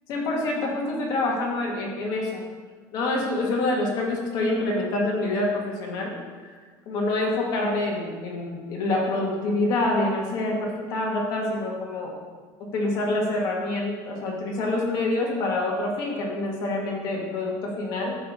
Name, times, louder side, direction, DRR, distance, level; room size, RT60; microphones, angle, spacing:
voice 1, 0.1-2.4 2.9-6.1 6.4-6.6 6.9-12.1 12.7-18.2, left 2 dB, 45° left, -1 dB, 1.7 m, -26 dB
9.4 x 3.6 x 6.1 m, 1.5 s
cardioid pair, 165°, 9 cm